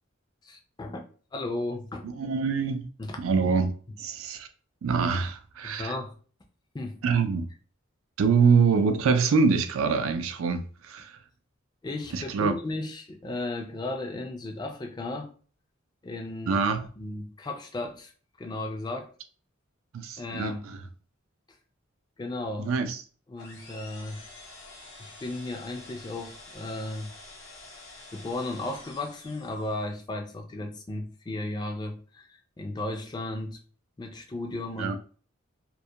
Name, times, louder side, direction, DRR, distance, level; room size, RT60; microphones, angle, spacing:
voice 1, 0.4-1.0 1.3-2.1 3.0-3.2 5.6-6.1 6.7-7.0 11.8-15.3 16.0-16.6 17.0-18.1 18.4-19.1 20.2-20.7 22.2-22.7 23.3-24.2 25.0-27.1 28.1-33.6 34.0-35.0, left 2 dB, 20° left, 0.3 m, -35 dB
voice 2, 2.0-2.9 3.2-3.7 4.0-4.5 4.8-5.9 7.0-7.5 8.2-11.2 12.1-12.5 16.5-16.8 19.9-20.8 22.6-23.0 34.8-35.0, right 5 dB, 85° right, 0.4 m, -25 dB
sound 1, 23.4-29.9, left 2 dB, 60° left, 0.7 m, -48 dB
2.3 x 2.1 x 2.7 m
head